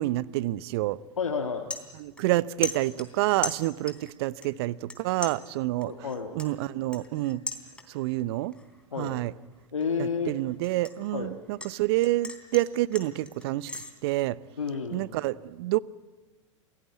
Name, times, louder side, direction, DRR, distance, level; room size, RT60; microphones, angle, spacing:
voice 1, 0.0-1.0 2.0-5.9 6.3-7.4 7.9-8.5 9.0-9.3 10.0-14.4 14.9-15.8, right 17 dB, 50° right, 0.7 m, -28 dB
sound 1, 0.8-1.0 1.3-2.4 2.6-4.1 4.4-5.0 5.2-8.1 8.5-8.9 9.3-11.7 12.0-13.9, left 2 dB, 5° left, 3.3 m, -38 dB
voice 2, 1.2-1.7 5.8-6.3 8.9-9.2 9.7-10.3 11.1-11.3 14.6-15.1, left 6 dB, 80° left, 1.6 m, -30 dB
27.5 x 17.5 x 9.3 m
figure-of-eight pair, 90°, 16 cm